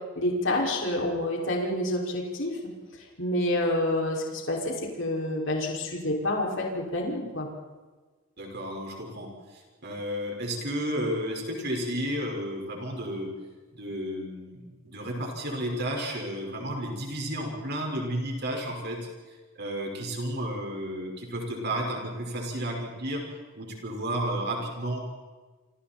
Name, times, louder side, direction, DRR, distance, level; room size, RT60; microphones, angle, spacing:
voice 1, 0.2-2.5 3.2-7.5, left 1 dB, 65° left, -1 dB, 5.8 m, -28 dB
voice 2, 8.4-13.3 13.7-14.6 14.8-23.3 23.6-25.0, equal, 55° right, 1 dB, 5.2 m, -32 dB
29.5 x 26.5 x 4.4 m, 1.3 s
head